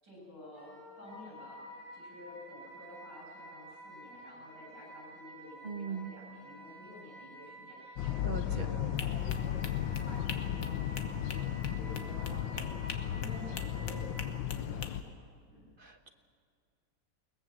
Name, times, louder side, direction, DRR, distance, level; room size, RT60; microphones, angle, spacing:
voice 1, 0.0-12.7 13.0-15.2 15.5-15.7, left 1 dB, 60° right, -3 dB, 8.4 m, -51 dB
Wind instrument woodwind instrument, 0.5-14.3, right 1 dB, 15° left, 8.1 m, -51 dB
voice 2, 5.6-6.1 8.2-8.7 15.8-16.1, right 5 dB, 35° right, 6 dB, 1.1 m, -39 dB
sound 1, 8.0-15.0, left 10 dB, 75° left, 1.5 m, -35 dB
sound 2, 9.0-14.9, left 5 dB, 45° left, 1.6 m, -45 dB
22.0 x 20.5 x 7.4 m, 2.2 s
omnidirectional pair, 2.1 m